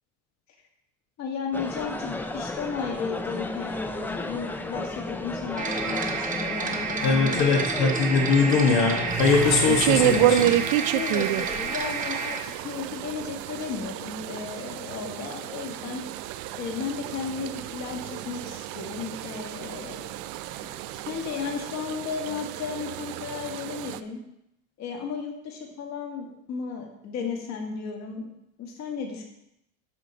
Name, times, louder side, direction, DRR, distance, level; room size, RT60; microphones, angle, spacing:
voice 1, 1.2-7.6 10.9-16.1 16.5-20.1 21.1-24.2 24.8-28.3 28.6-29.2, left 5 dB, 50° left, 1 dB, 1.8 m, -34 dB
sound 1, 1.5-10.4, left 2 dB, 5° left, 0.3 m, -34 dB
sound 2, 5.6-12.4, right 5 dB, 25° right, 0.9 m, -30 dB
voice 2, 7.0-10.5, left 4 dB, 80° left, 0 dB, 1.5 m, -22 dB
sound 3, 9.1-24.0, right 12 dB, 80° right, 0.5 m, -29 dB
12.0 x 4.6 x 4.0 m, 0.81 s
cardioid pair, 150°, 34 cm